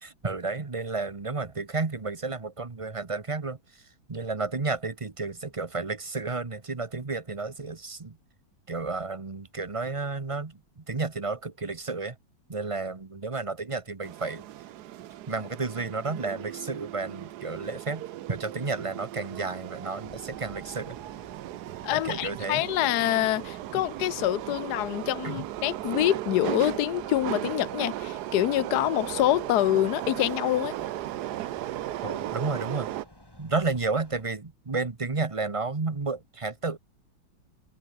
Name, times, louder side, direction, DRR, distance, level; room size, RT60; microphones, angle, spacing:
voice 1, 0.0-3.8 4.1-8.2 8.7-12.2 12.5-14.4 15.3-21.0 21.9-22.6 25.2-25.5 32.0-32.9 33.4-36.8, right 3 dB, 25° right, 0.7 m, -32 dB
sound 1, 14.0-33.0, right 14 dB, 70° right, 1.0 m, -36 dB
sound 2, 20.0-34.2, left 1 dB, 10° left, 3.6 m, -54 dB
voice 2, 21.8-30.7, left 14 dB, 70° left, 1.0 m, -26 dB
omnidirectional pair, 2.2 m